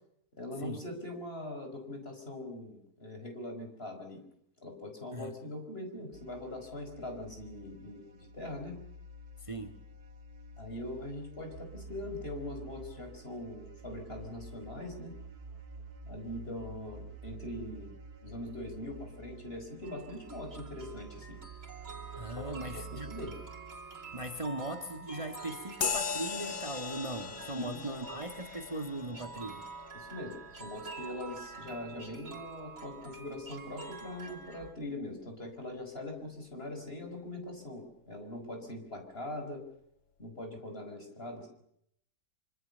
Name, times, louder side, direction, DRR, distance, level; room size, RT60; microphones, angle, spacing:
voice 1, 0.4-4.2 4.6-8.8 10.6-15.1 16.1-17.9 18.2-21.4 22.3-23.3 27.6-27.8 29.9-30.3 30.6-39.6 40.2-41.5, left 1 dB, 40° left, 5 dB, 5.8 m, -42 dB
sound 1, 6.1-24.3, right 3 dB, 80° right, 2.4 m, -49 dB
voice 2, 9.4-9.7 22.1-23.1 24.1-29.6, right 1 dB, 20° right, 6 dB, 1.8 m, -39 dB
sound 2, 19.8-34.7, right 4 dB, 60° right, 3.5 m, -48 dB
sound 3, 25.8-33.7, left 5 dB, 60° left, 1.8 m, -40 dB
25.5 x 25.5 x 6.9 m, 0.73 s
omnidirectional pair, 1.6 m